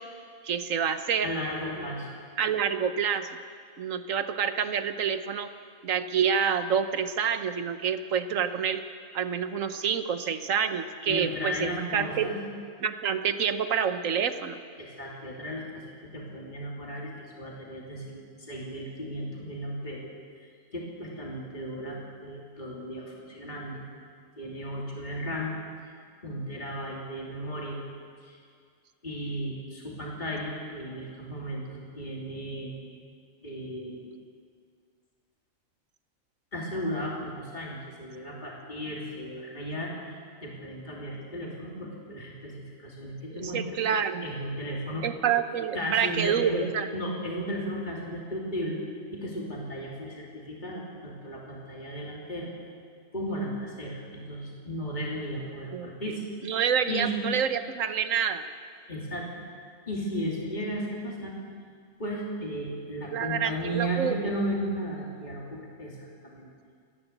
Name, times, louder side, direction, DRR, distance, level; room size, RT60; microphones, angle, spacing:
voice 1, 0.4-1.3 2.4-3.3 3.8-5.5 5.8-8.8 9.1-12.3 12.8-14.6 43.3-44.3 45.0-46.9 55.7-55.9 56.4-58.4 63.1-64.2, right 7 dB, 75° right, 9 dB, 1.4 m, -27 dB
voice 2, 1.2-2.1 11.0-12.4 14.8-20.1 20.4-23.8 24.4-25.5 26.2-27.8 28.2-28.4 29.0-32.7 33.4-34.2 36.5-45.1 45.7-46.6 46.9-48.8 49.1-52.5 53.1-56.2 56.9-57.1 58.9-59.4 59.9-61.3 62.0-66.5, equal, 35° left, -3 dB, 3.2 m, -35 dB
29.0 x 11.0 x 8.2 m, 2.1 s
omnidirectional pair, 1.4 m